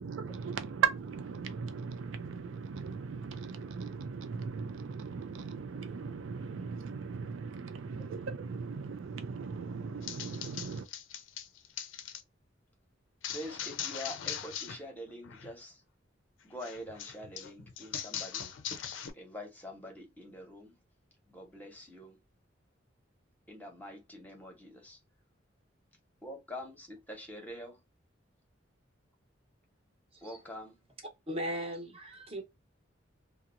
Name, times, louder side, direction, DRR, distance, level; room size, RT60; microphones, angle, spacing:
voice 1, 0.0-10.9, right 6 dB, 85° right, 0.4 m, -37 dB
sound 1, 10.0-12.2 13.2-14.8 15.1-15.5 16.6-19.1, left 9 dB, 80° left, 0.4 m, -40 dB
voice 2, 13.3-15.8 16.4-18.5 19.1-20.8 21.3-22.2 23.5-25.0 26.2-27.8 30.2-30.8, left 1 dB, 10° left, 0.8 m, -45 dB
voice 3, 30.1-30.6 31.3-32.4, equal, 30° right, 0.8 m, -38 dB
2.8 x 2.0 x 2.4 m
head